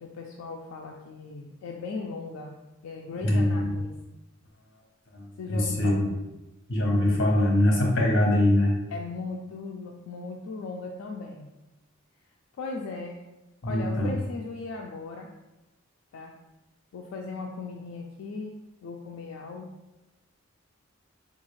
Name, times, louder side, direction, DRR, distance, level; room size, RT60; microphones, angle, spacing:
voice 1, 0.0-2.5 2.8-3.9 5.4-6.1 8.9-11.5 12.6-13.2 13.6-15.3 16.1-16.3 16.9-18.6 18.8-19.7, left 3 dB, 85° left, 1 dB, 0.3 m, -37 dB
voice 2, 3.2-3.7 5.1-5.9 6.7-8.7 13.6-14.1, left 1 dB, 65° left, -1 dB, 0.9 m, -23 dB
3.7 x 2.4 x 3.0 m, 1.0 s
head